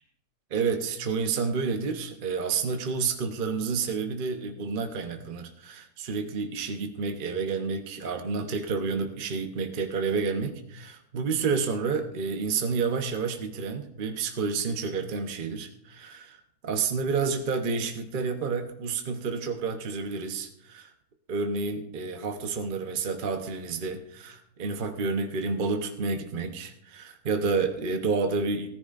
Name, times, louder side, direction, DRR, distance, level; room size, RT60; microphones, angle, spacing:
voice 1, 0.5-20.9 21.3-28.7, right 4 dB, 40° right, 5 dB, 0.9 m, -30 dB
16.0 x 14.0 x 2.5 m, 0.76 s
omnidirectional pair, 1.7 m